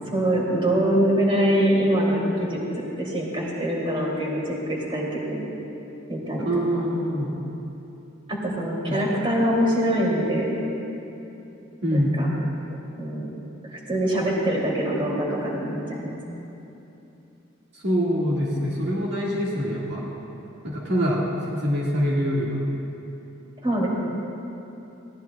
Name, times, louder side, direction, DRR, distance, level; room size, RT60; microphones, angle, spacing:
voice 1, 0.1-2.6 3.0-4.4 4.7-5.5 6.1-6.5 6.7-6.8 8.3-10.5 11.9-12.3 13.0-13.3 13.7-16.1 23.6-23.9, right 1 dB, 25° right, -4 dB, 2.8 m, -24 dB
voice 2, 6.4-7.3 8.9-9.0 11.8-12.2 17.7-20.0 20.6-21.2 21.5-22.6, equal, 60° right, -6 dB, 2.0 m, -24 dB
21.0 x 16.5 x 2.3 m, 2.9 s
head